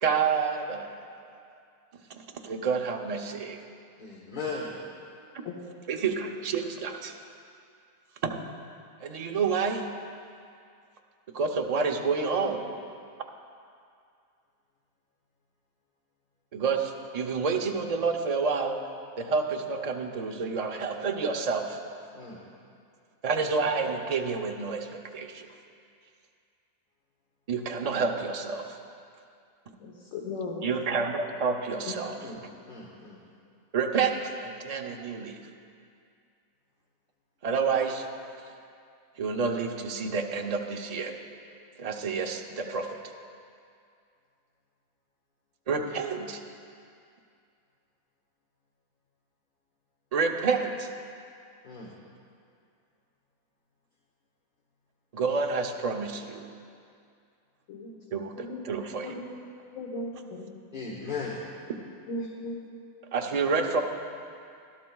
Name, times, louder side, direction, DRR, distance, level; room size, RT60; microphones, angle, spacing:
voice 1, 0.0-1.0 2.1-3.6 5.9-7.1 8.2-8.4 9.0-9.9 11.3-12.6 16.5-18.8 19.2-21.8 23.2-25.5 27.5-28.8 30.6-32.2 33.7-35.4 37.4-38.1 39.2-41.1 41.8-43.0 45.7-46.4 50.1-50.9 55.1-56.5 58.1-59.1 63.1-63.8, right 5 dB, 40° right, 3 dB, 0.5 m, -29 dB
voice 2, 4.0-4.7 22.1-22.4 32.2-32.4 32.7-33.2 51.6-51.9 60.7-61.4, left 4 dB, 40° left, -4 dB, 1.1 m, -36 dB
voice 3, 29.8-30.6 31.8-31.9 57.7-57.9 58.4-58.6 59.0-59.2 59.7-60.5 62.1-62.6, left 2 dB, 65° left, -3 dB, 1.4 m, -36 dB
17.0 x 12.0 x 2.3 m, 2.4 s
omnidirectional pair, 1.5 m